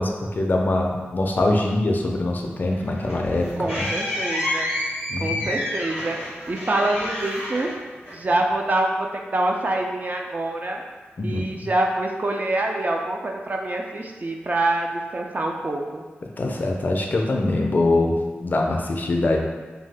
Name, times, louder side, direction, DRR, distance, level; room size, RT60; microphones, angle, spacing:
voice 1, 0.0-3.9 5.1-5.5 11.2-11.5 16.2-19.4, left 2 dB, 45° left, 1 dB, 0.4 m, -23 dB
sound 1, 2.7-8.5, left 1 dB, 70° right, 1.3 m, -29 dB
voice 2, 3.6-4.7 5.2-6.2 6.5-7.7 8.1-10.8 11.2-16.0, right 2 dB, 40° right, 1 dB, 0.3 m, -25 dB
2.7 x 2.3 x 3.3 m, 1.4 s
wide cardioid pair, 110°, 4 cm